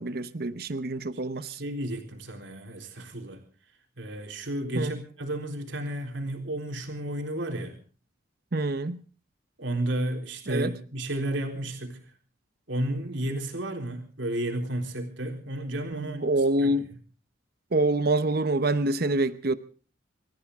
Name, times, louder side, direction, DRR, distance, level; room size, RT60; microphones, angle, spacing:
voice 1, 0.0-1.6 4.7-4.9 8.5-9.0 10.5-10.8 15.9-16.9 17.7-19.6, right 2 dB, 50° right, 12 dB, 0.8 m, -26 dB
voice 2, 1.5-3.4 4.0-7.8 9.6-12.0 12.7-16.2 16.6-16.7, right 1 dB, 70° right, 3 dB, 3.8 m, -32 dB
26.5 x 14.5 x 3.6 m, 0.39 s
head